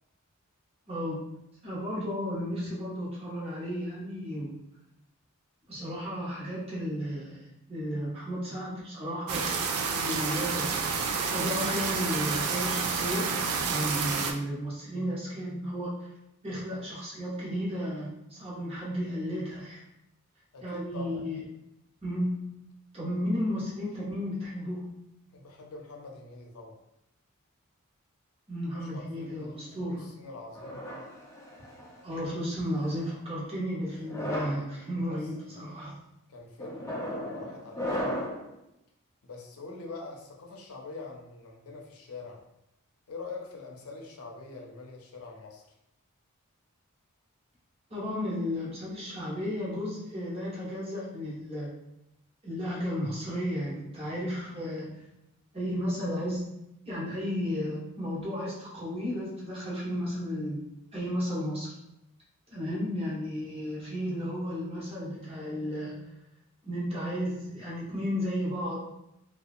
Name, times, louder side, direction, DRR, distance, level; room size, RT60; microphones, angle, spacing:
voice 1, 0.9-1.3 1.6-4.6 5.7-10.8 11.3-13.4 13.6-16.1 16.4-19.8 20.6-21.4 22.0-22.5 22.9-25.0 28.5-30.1 32.0-36.0 47.9-51.7 52.4-55.0 55.5-56.6 56.8-60.6 60.9-61.7 62.5-66.1 66.6-68.8, equal, 30° right, -6 dB, 0.8 m, -33 dB
sound 1, 9.3-14.3, right 5 dB, 80° right, 0.4 m, -29 dB
voice 2, 20.5-21.2 25.3-26.8 28.7-30.8 34.9-35.2 36.3-38.3 39.2-42.4 43.1-45.6, left 3 dB, 75° left, 1 dB, 0.5 m, -44 dB
sound 2, 30.6-32.0 32.8-33.1 34.0-34.6 35.3-35.6 36.6-38.5, left 1 dB, 15° left, 0.4 m, -35 dB
2.7 x 2.2 x 2.4 m, 0.85 s
head